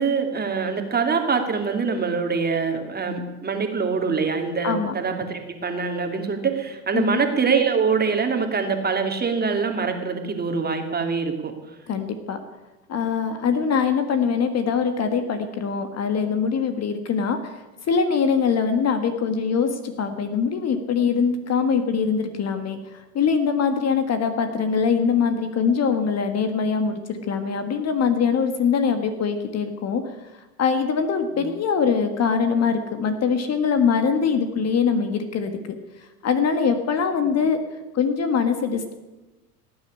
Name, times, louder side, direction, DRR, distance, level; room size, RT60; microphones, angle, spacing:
voice 1, 0.0-11.5 31.3-31.5 37.2-37.3, right 5 dB, 20° right, 4 dB, 2.5 m, -24 dB
voice 2, 4.6-5.0 6.9-7.2 11.9-12.4 12.9-30.0 30.6-35.8 36.2-37.6 37.9-38.9, left 6 dB, 35° left, 8 dB, 1.7 m, -23 dB
17.5 x 9.4 x 8.5 m, 1.1 s
hypercardioid pair, 90°, 47 cm